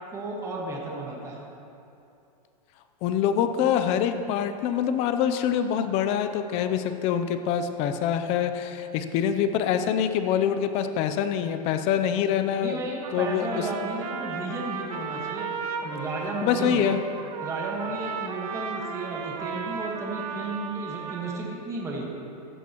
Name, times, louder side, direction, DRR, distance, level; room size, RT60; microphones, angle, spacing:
voice 1, 0.1-1.4 12.6-15.5 15.8-16.9 17.4-22.0, right 2 dB, 15° right, -2 dB, 1.5 m, -33 dB
voice 2, 3.0-12.8 13.1-13.7 16.4-17.0, left 8 dB, 30° left, 9 dB, 0.6 m, -25 dB
Trumpet, 13.0-21.4, right 5 dB, 60° right, 1.2 m, -35 dB
15.5 x 12.0 x 3.0 m, 2.7 s
supercardioid pair, 155°, 21 cm